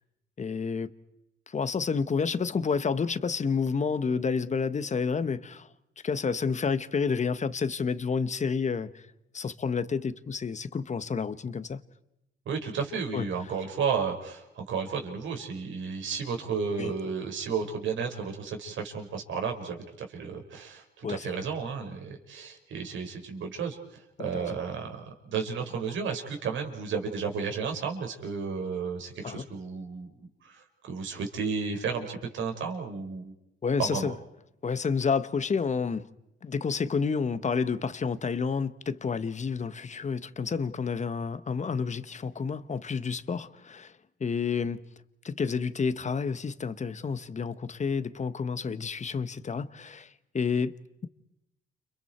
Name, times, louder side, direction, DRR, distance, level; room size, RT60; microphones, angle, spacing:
voice 1, 0.4-0.9 1.5-5.7 6.0-9.0 9.3-11.8 13.1-13.3 16.8-16.9 21.0-21.4 24.2-24.6 29.2-29.4 33.6-34.1 34.6-36.1 36.4-43.9 44.2-44.8 45.2-50.7, left 5 dB, 35° left, 1.5 m, -30 dB
voice 2, 12.5-23.8 24.2-33.3 33.8-34.1, right 5 dB, 75° right, 5.6 m, -33 dB
30.0 x 30.0 x 4.6 m
cardioid pair, 90°, 20 cm